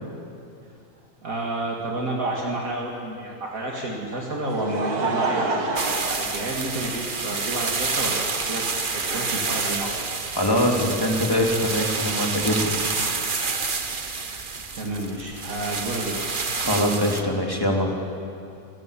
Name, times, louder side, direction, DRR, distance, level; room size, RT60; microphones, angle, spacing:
voice 1, 1.2-10.0 14.7-16.2, right 1 dB, 65° right, -2 dB, 2.8 m, -30 dB
Laughter, 4.1-7.3 8.1-8.2 9.7-9.8, right 3 dB, 80° right, 2.5 m, -28 dB
sound 1, 5.8-17.2, right 4 dB, 35° right, 1.3 m, -28 dB
voice 2, 10.3-12.8 16.6-17.9, equal, 15° left, 0 dB, 3.1 m, -23 dB
27.5 x 18.0 x 8.5 m, 2.5 s
omnidirectional pair, 1.6 m